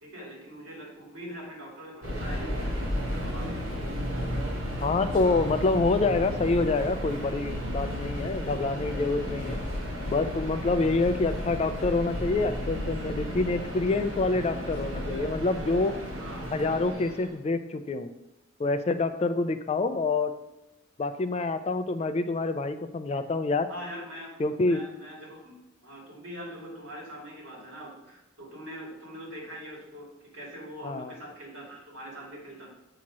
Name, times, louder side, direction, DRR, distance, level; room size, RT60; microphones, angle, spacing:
voice 1, 0.0-2.9 3.1-3.7 10.8-11.0 16.2-16.7 19.4-19.5 23.7-24.3 24.6-25.5 25.8-32.7, equal, 70° right, -3 dB, 2.4 m, -43 dB
Subway metro underground, 2.0-17.4, equal, 90° right, 1.9 m, -33 dB
voice 2, 4.8-9.6 10.1-16.0 16.5-18.1 18.6-20.4 21.0-23.7 24.4-24.8 30.8-31.1, left 3 dB, 30° left, 10 dB, 0.3 m, -27 dB
7.3 x 2.8 x 5.9 m, 0.92 s
head